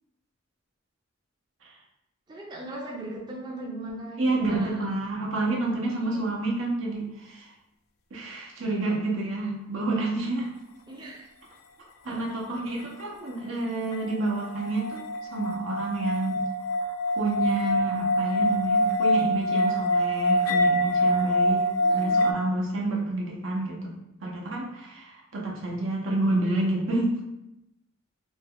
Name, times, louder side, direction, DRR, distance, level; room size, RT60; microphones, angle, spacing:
voice 1, 2.3-4.8 5.8-6.2 10.9-11.3 12.1-12.2 12.5-12.6 21.8-22.3, right 1 dB, 20° right, -3 dB, 0.5 m, -39 dB
voice 2, 4.2-7.5 8.1-10.5 12.0-16.4 17.2-23.9 24.2-27.2, right 2 dB, 70° right, -2 dB, 0.7 m, -29 dB
sound 1, 13.9-22.3, equal, 85° left, 0.3 m, -25 dB
2.7 x 2.2 x 3.6 m, 0.87 s
head